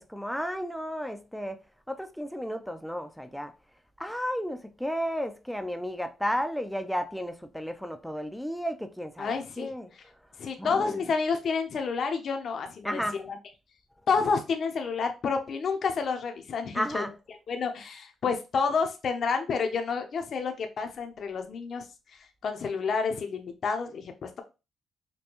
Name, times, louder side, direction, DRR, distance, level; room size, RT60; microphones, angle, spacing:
voice 1, 0.0-1.6 1.9-3.5 4.0-9.9 10.6-11.1 12.8-13.2 16.7-17.2, equal, ahead, 0.5 m, -33 dB
voice 2, 9.2-9.7 10.4-13.4 14.1-17.0 17.5-21.9 22.1-24.4, left 5 dB, 55° left, 0.7 m, -29 dB
5.2 x 2.2 x 2.9 m
cardioid pair, 90°, 0 cm